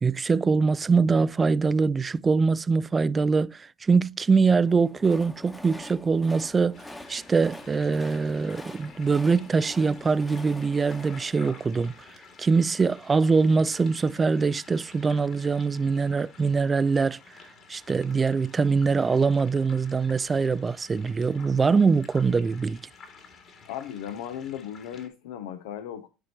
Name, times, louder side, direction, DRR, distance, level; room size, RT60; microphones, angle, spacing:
voice 1, 0.0-11.9 12.4-17.2 17.7-22.8, right 4 dB, 25° right, 0.3 m, -23 dB
Train, 4.5-12.6, left 1 dB, 10° left, 1.0 m, -45 dB
sound 1, 6.7-25.1, left 4 dB, 50° left, 2.3 m, -51 dB
voice 2, 23.7-26.1, left 10 dB, 80° left, 0.6 m, -36 dB
11.5 x 4.5 x 2.9 m
supercardioid pair, 85°, 0 cm